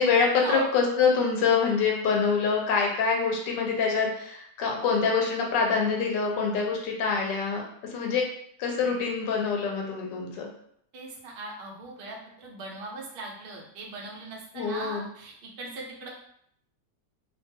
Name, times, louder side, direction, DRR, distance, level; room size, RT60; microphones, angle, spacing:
voice 1, 0.0-8.3 8.6-10.5 14.5-15.1, left 5 dB, 85° left, 0 dB, 1.2 m, -25 dB
voice 2, 10.9-16.1, right 3 dB, 70° right, -2 dB, 0.5 m, -39 dB
2.9 x 2.2 x 2.7 m, 0.68 s
omnidirectional pair, 1.8 m